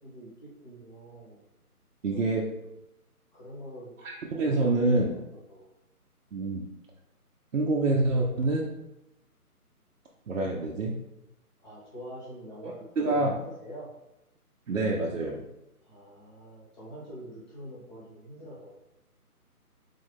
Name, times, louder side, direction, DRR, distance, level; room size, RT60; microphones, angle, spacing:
voice 1, 0.0-1.4 2.1-2.3 3.3-3.9 4.4-5.2 5.5-5.7 11.6-13.9 15.8-18.8, equal, 30° left, -6 dB, 1.3 m, -45 dB
voice 2, 2.0-2.5 4.0-5.1 6.3-6.7 7.5-8.7 10.3-11.0 13.0-13.4 14.7-15.4, right 2 dB, 55° right, -2 dB, 0.6 m, -26 dB
3.7 x 2.5 x 3.5 m, 0.90 s
figure-of-eight pair, 155°, 46 cm